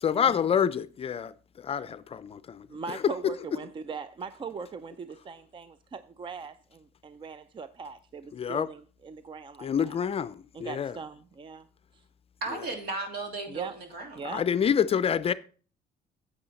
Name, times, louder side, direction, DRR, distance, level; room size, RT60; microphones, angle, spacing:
voice 1, 0.0-1.3 1.6-2.6 8.3-8.7 9.6-10.3 10.6-10.9 14.3-15.3, left 8 dB, 35° left, 0.5 m, -27 dB
voice 2, 2.7-10.0 10.5-11.7 11.9-12.0 13.5-13.7 14.1-14.4, right 5 dB, 30° right, 0.5 m, -40 dB
voice 3, 12.4-14.2, right 3 dB, 65° right, 3.0 m, -35 dB
8.6 x 8.1 x 4.1 m
cardioid pair, 110°, 17 cm